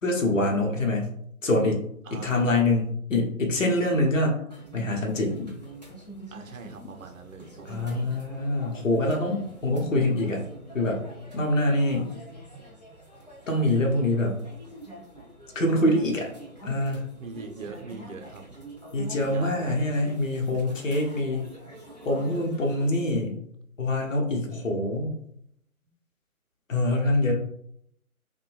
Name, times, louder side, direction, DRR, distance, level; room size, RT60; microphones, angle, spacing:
voice 1, 0.0-1.1 1.4-1.8 2.1-4.4 4.7-5.5 6.8-6.9 7.7-10.4 10.7-11.0 11.3-12.2 13.5-14.4 15.5-16.3 16.6-17.1 18.9-21.5 22.0-23.4 23.8-25.1 26.7-27.3, left 1 dB, 60° left, 1 dB, 0.8 m, -25 dB
voice 2, 2.1-2.4 6.3-8.0 16.0-16.3 17.2-18.5 19.1-19.8, right 4 dB, 65° right, 5 dB, 0.6 m, -42 dB
sound 1, 4.5-22.9, right 1 dB, 30° left, 0.4 m, -45 dB
2.6 x 2.2 x 3.1 m, 0.71 s
figure-of-eight pair, 150°, 44 cm